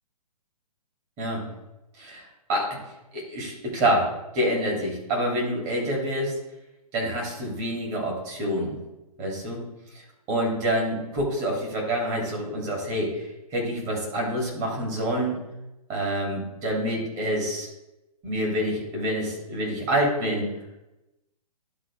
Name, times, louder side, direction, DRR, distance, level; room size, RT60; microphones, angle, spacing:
voice 1, 2.0-2.7 3.1-6.4 6.9-8.8 9.2-9.6 10.3-13.3 13.5-15.4 15.9-17.7 18.2-20.5, right 1 dB, 30° right, -1 dB, 3.0 m, -27 dB
11.5 x 4.1 x 3.7 m, 0.95 s
hypercardioid pair, 130°, 20 cm